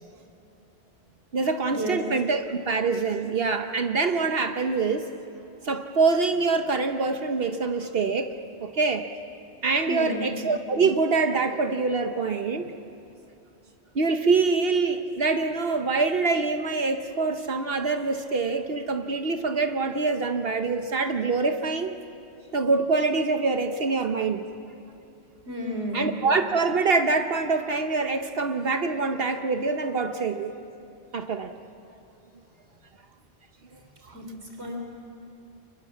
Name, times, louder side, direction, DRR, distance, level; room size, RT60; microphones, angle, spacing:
voice 1, 1.3-5.1 5.6-8.3 8.6-9.0 9.6-12.7 13.9-22.0 22.5-24.4 25.9-30.5 31.1-31.5, right 4 dB, 65° right, 7 dB, 1.2 m, -25 dB
voice 2, 9.8-10.3 25.5-26.1 34.1-34.8, right 1 dB, 85° right, 2 dB, 3.6 m, -32 dB
30.0 x 24.0 x 7.3 m, 2.8 s
omnidirectional pair, 1.1 m